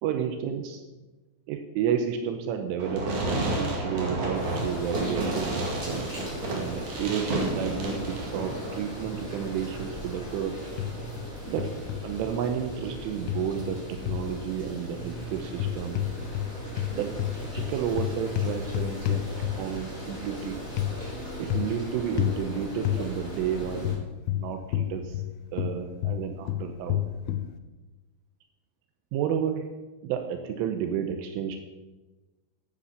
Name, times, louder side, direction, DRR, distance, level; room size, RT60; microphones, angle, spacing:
voice 1, 0.0-0.8 1.5-5.7 6.5-10.6 11.5-11.7 12.0-16.0 16.9-17.1 17.5-19.3 19.5-20.6 21.4-23.9 24.3-25.2 25.5-27.0 29.1-29.7 30.0-31.6, right 8 dB, 80° right, 6 dB, 3.2 m, -31 dB
Fireworks, 2.8-8.8, right 2 dB, 50° right, 3.0 m, -30 dB
sound 1, 4.3-23.9, equal, 15° right, 5.4 m, -38 dB
sound 2, 10.8-11.3 11.6-12.0 13.3-14.3 15.5-16.5 16.8-19.8 20.8-20.9 21.5-21.8 22.2-22.4 22.9-23.0 23.8-25.3 25.6-27.5, left 14 dB, 85° left, 3.2 m, -29 dB
10.0 x 10.0 x 6.7 m, 1.2 s
omnidirectional pair, 5.8 m